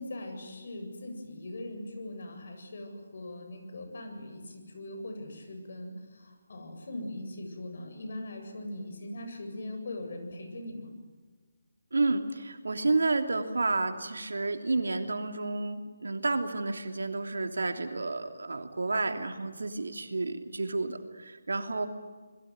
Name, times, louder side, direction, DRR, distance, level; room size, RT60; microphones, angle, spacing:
voice 1, 0.0-10.9, left 1 dB, 60° left, 5 dB, 7.9 m, -40 dB
voice 2, 11.9-21.9, right 3 dB, 80° right, 6 dB, 3.0 m, -30 dB
27.5 x 21.5 x 9.6 m, 1.4 s
figure-of-eight pair, 160°, 0 cm